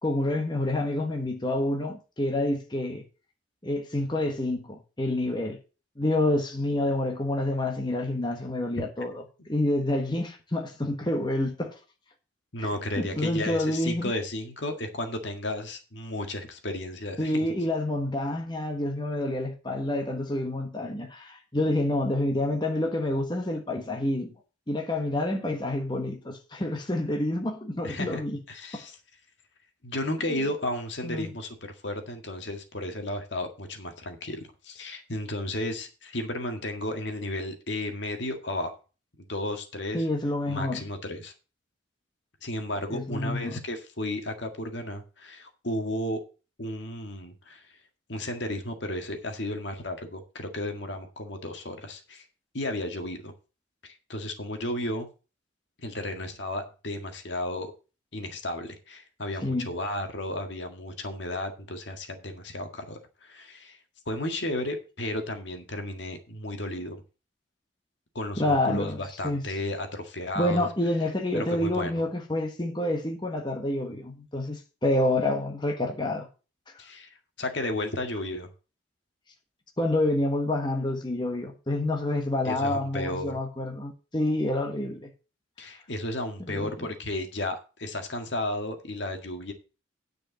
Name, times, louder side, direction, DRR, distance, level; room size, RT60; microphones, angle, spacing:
voice 1, 0.0-3.0 3.6-5.6 6.0-9.1 9.4-11.8 12.6-12.7 13.0-14.1 17.2-24.3 24.7-28.4 28.7-28.8 31.0-31.3 39.9-40.8 42.9-43.6 59.4-59.7 68.4-69.0 69.2-69.4 70.3-76.3 79.8-85.1 86.4-86.9, left 1 dB, 25° left, 1.4 m, -28 dB
voice 2, 12.5-17.5 27.8-28.2 28.5-29.0 29.8-31.6 31.8-38.8 39.3-40.0 40.5-41.3 42.4-46.2 46.6-47.7 48.1-52.3 52.5-53.3 53.8-55.1 55.8-57.7 58.1-63.8 64.1-67.0 68.2-70.7 71.3-71.9 76.8-77.1 77.4-78.5 82.4-83.4 85.6-89.5, left 1 dB, 65° left, 1.8 m, -33 dB
10.0 x 5.2 x 7.0 m
head